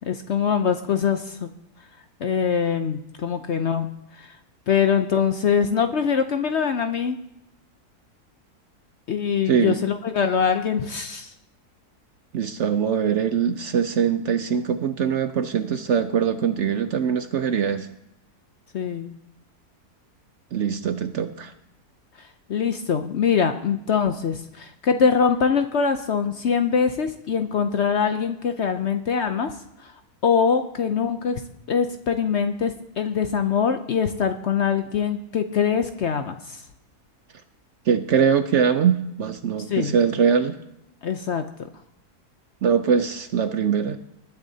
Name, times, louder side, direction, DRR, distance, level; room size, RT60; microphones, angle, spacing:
voice 1, 0.1-1.5 2.2-3.9 4.2-4.3 4.7-7.2 9.1-11.3 18.7-19.1 22.5-29.5 30.2-31.4 31.7-36.6 39.7-39.9 41.0-41.4, left 6 dB, 60° left, 8 dB, 0.8 m, -23 dB
voice 2, 12.3-17.9 20.5-21.5 37.9-40.6 42.6-44.0, right 7 dB, 60° right, 9 dB, 0.8 m, -22 dB
20.0 x 10.5 x 2.8 m, 0.83 s
omnidirectional pair, 1.6 m